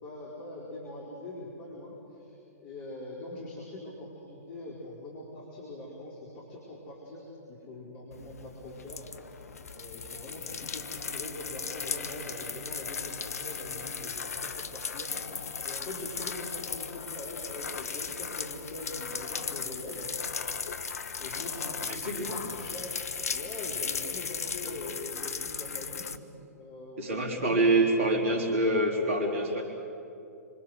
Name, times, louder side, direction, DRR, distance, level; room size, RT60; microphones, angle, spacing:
voice 1, 0.0-9.4 9.7-15.3 15.6-20.1 20.9-23.0 23.3-28.0, left 1 dB, 40° left, -2 dB, 4.5 m, -43 dB
sound 1, 8.1-26.2, left 6 dB, 65° left, 1.1 m, -37 dB
voice 2, 21.9-22.4 24.6-24.7 27.0-29.6, right 1 dB, 50° right, 0 dB, 4.1 m, -26 dB
26.5 x 25.5 x 6.4 m, 2.8 s
figure-of-eight pair, 110°, 9 cm